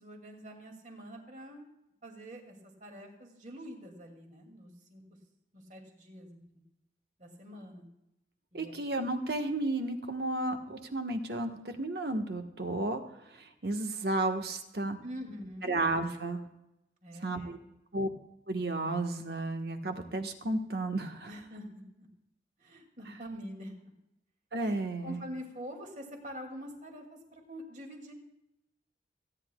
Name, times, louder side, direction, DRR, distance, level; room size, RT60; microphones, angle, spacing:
voice 1, 0.0-1.7 2.0-5.0 5.5-6.4 7.2-7.8 8.5-8.7 15.0-15.8 17.0-17.7 21.2-22.1 22.6-23.9 24.6-24.8 25.0-28.1, equal, 45° right, 2 dB, 2.4 m, -45 dB
voice 2, 8.5-15.0 15.7-16.4 17.2-17.6 17.9-18.1 18.5-21.3 24.5-25.2, right 2 dB, 65° right, 5 dB, 1.3 m, -33 dB
30.0 x 10.0 x 2.3 m, 0.87 s
head